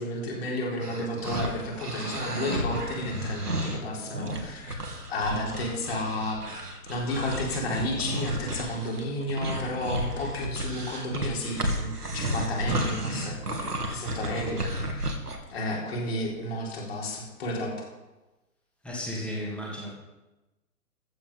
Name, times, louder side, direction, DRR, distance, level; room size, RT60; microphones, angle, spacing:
voice 1, 0.0-4.8 5.1-6.4 6.9-13.6 13.9-15.1 15.5-17.9, left 1 dB, 40° left, -2 dB, 3.9 m, -32 dB
sound 1, 0.8-15.4, right 1 dB, 80° right, 2.2 m, -32 dB
voice 2, 14.3-14.6 18.8-19.9, equal, ahead, -4 dB, 1.9 m, -35 dB
14.0 x 8.4 x 5.4 m, 1.1 s
figure-of-eight pair, 130°, 46 cm